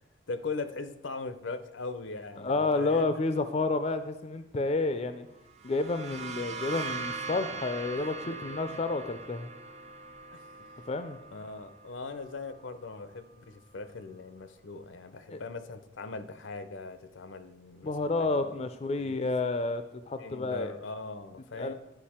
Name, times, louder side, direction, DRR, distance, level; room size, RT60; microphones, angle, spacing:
voice 1, 0.3-3.1 7.9-8.8 10.3-10.4 11.3-18.6 19.0-19.2 20.2-21.7, left 3 dB, 80° left, 11 dB, 0.6 m, -40 dB
voice 2, 2.4-5.3 5.6-9.5 10.9-11.2 15.3-15.4 17.8-20.7 21.6-21.7, left 3 dB, 35° left, 10 dB, 0.4 m, -30 dB
sound 1, 5.5-13.1, right 4 dB, 35° right, 0.5 m, -41 dB
10.5 x 5.0 x 4.3 m, 0.90 s
head